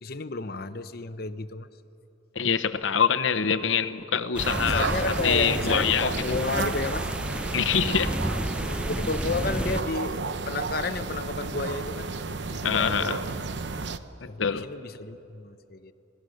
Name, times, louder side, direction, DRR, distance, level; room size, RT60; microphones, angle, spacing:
voice 1, 0.0-1.7 4.6-7.1 8.9-10.2 10.5-12.1 12.5-13.4 14.3-15.9, left 3 dB, 50° left, 12 dB, 0.8 m, -32 dB
voice 2, 2.3-4.9 5.2-6.1 7.5-8.2 12.6-13.2 14.2-14.6, left 7 dB, 80° left, 9 dB, 0.9 m, -25 dB
sound 1, 4.3-9.8, right 1 dB, 5° right, 0.5 m, -31 dB
sound 2, 4.4-14.0, right 4 dB, 65° right, 0.7 m, -32 dB
25.5 x 19.0 x 6.5 m, 3.0 s
head